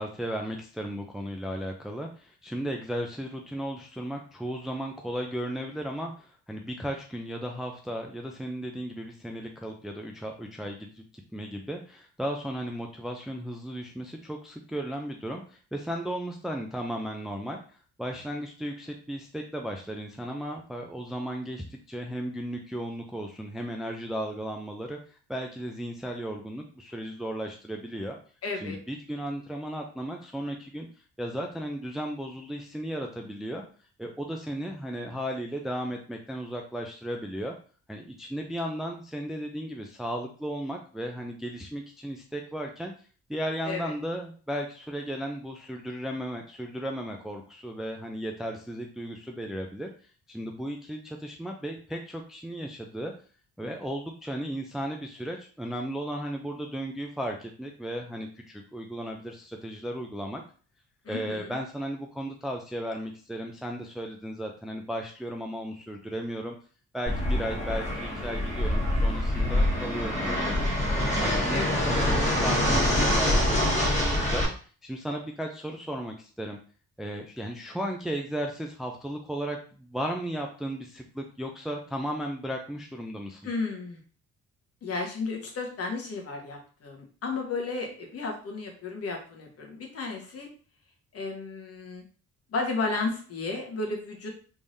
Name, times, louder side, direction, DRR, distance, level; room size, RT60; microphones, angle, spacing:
voice 1, 0.0-17.6 18.0-28.2 28.5-30.9 31.2-33.6 34.0-37.5 37.9-42.9 43.3-49.9 50.3-53.1 53.6-60.4 61.1-66.6 66.9-70.7 71.2-74.5 74.8-76.6 77.0-83.4, equal, ahead, 2 dB, 0.4 m, -35 dB
voice 2, 28.4-28.8 43.6-43.9 61.0-61.5 71.5-71.8 83.4-84.0 84.8-90.5 91.1-92.0 92.5-94.3, left 3 dB, 50° left, 1 dB, 1.3 m, -33 dB
Fixed-wing aircraft airplane, 67.1-74.4, left 1 dB, 25° left, 1.6 m, -25 dB
3.5 x 3.3 x 2.7 m, 0.41 s
cardioid pair, 90°, 30 cm